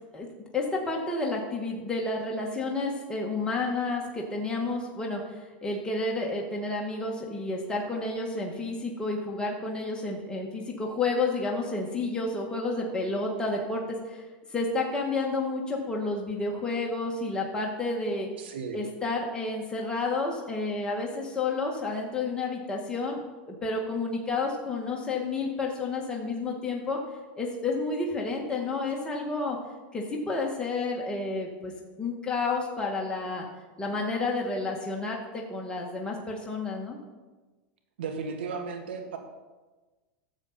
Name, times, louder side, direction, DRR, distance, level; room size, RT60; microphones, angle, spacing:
voice 1, 0.5-14.2 14.5-18.3 18.7-23.2 23.5-27.0 27.4-29.6 29.9-31.7 32.0-33.4 33.8-37.0, left 3 dB, 15° left, -1 dB, 1.7 m, -30 dB
voice 2, 18.4-18.8 38.0-39.2, right 5 dB, 80° right, 4 dB, 1.7 m, -35 dB
12.0 x 7.4 x 4.3 m, 1.2 s
hypercardioid pair, 105°, 6 cm